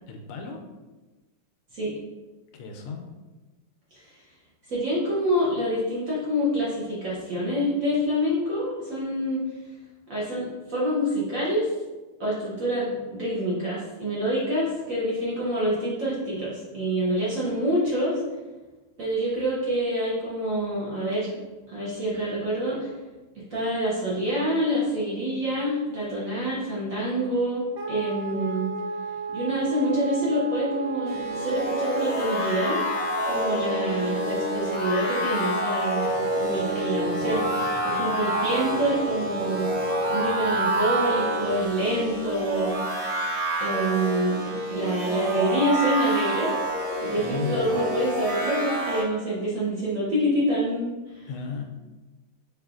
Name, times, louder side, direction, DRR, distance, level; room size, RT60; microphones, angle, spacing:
voice 1, 0.1-0.6 2.5-3.0 47.2-47.7 51.3-51.6, left 5 dB, 90° left, 3 dB, 1.5 m, -34 dB
voice 2, 4.7-9.4 10.1-11.7 12.2-18.2 19.0-21.3 21.7-22.9 23.3-27.6 27.9-28.7 29.3-32.8 33.2-36.1 36.4-39.7 40.1-42.8 43.6-44.3 44.7-46.5 47.0-51.3, equal, 55° right, -7 dB, 1.0 m, -26 dB
Wind instrument woodwind instrument, 27.8-41.2, right 4 dB, 90° right, 0.7 m, -34 dB
sound 1, 31.1-49.0, right 1 dB, 35° right, 1.2 m, -28 dB
sound 2, 36.0-42.3, equal, 5° left, 0.8 m, -46 dB
4.8 x 3.1 x 2.4 m, 1.2 s
omnidirectional pair, 2.3 m